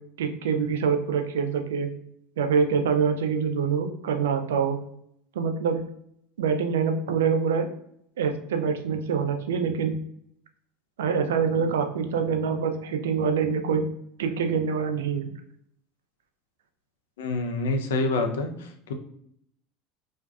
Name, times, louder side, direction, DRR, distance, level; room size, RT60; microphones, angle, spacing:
voice 1, 0.2-1.9 2.4-4.8 5.4-5.8 6.4-7.7 8.2-10.0 11.0-13.8 14.2-15.3, right 6 dB, 75° right, 6 dB, 0.3 m, -25 dB
voice 2, 17.2-18.9, left 2 dB, 75° left, 5 dB, 0.4 m, -27 dB
2.4 x 2.2 x 2.2 m, 0.70 s
hypercardioid pair, 75°, 0 cm